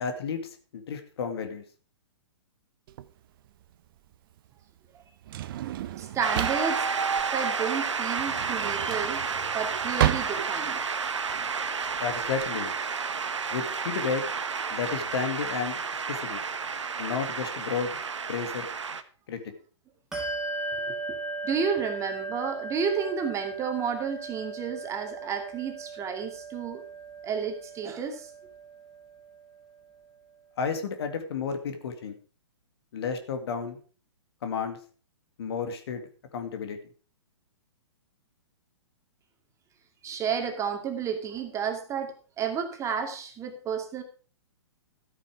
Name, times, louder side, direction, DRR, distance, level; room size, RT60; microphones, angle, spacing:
voice 1, 0.0-1.6 12.0-12.7 13.5-14.2 14.7-15.8 16.1-16.4 17.0-17.9 18.3-18.7 19.3-19.4 30.6-32.2 32.9-33.8 34.4-34.8 35.4-36.0 36.3-36.8, left 6 dB, 55° left, 7 dB, 2.3 m, -32 dB
Drawer open or close, 2.9-12.5, right 12 dB, 50° right, 0.8 m, -33 dB
voice 2, 6.0-6.9 7.3-9.3 9.5-10.8 20.9-21.0 21.4-26.8 27.2-28.3 40.0-44.0, right 6 dB, 20° right, 5 dB, 2.2 m, -31 dB
Shout / Cheering / Applause, 6.2-19.0, right 5 dB, 80° right, 1.2 m, -31 dB
Bell, 20.1-30.1, right 3 dB, 5° right, 3.6 m, -38 dB
13.0 x 9.1 x 4.7 m, 0.38 s
figure-of-eight pair, 125°, 15 cm